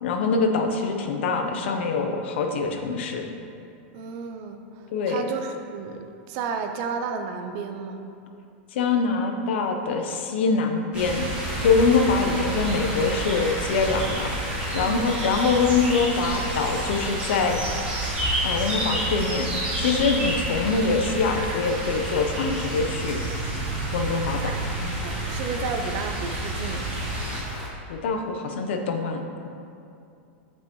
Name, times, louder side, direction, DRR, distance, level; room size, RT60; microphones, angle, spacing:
voice 1, 0.0-3.3 4.9-5.3 8.7-11.3 11.6-14.3 14.7-17.6 18.4-23.2 23.9-24.5 27.9-29.5, left 4 dB, 70° left, 4 dB, 0.7 m, -24 dB
voice 2, 3.9-8.0 14.8-15.1 24.3-26.9, right 5 dB, 40° right, 5 dB, 0.5 m, -33 dB
sound 1, 10.9-27.4, right 1 dB, 15° right, 1.6 m, -29 dB
sound 2, 11.4-27.7, left 1 dB, 5° left, 0.8 m, -38 dB
7.7 x 5.5 x 3.0 m, 2.6 s
supercardioid pair, 170°, 7 cm